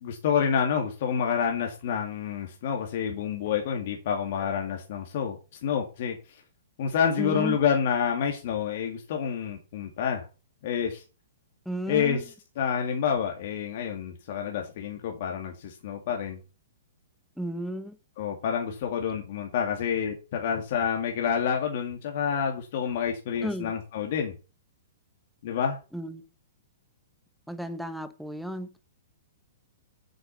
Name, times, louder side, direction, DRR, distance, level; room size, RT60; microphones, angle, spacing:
voice 1, 0.0-6.4 6.8-10.3 10.6-11.0 11.9-16.4 18.2-24.3 25.4-25.8, left 7 dB, 55° left, 2 dB, 2.3 m, -28 dB
voice 2, 7.2-7.6 11.7-12.2 17.4-17.9 23.4-23.7 25.9-26.2 27.5-28.7, equal, ahead, 10 dB, 1.2 m, -33 dB
7.9 x 7.8 x 5.4 m, 0.32 s
hypercardioid pair, 125°, 0 cm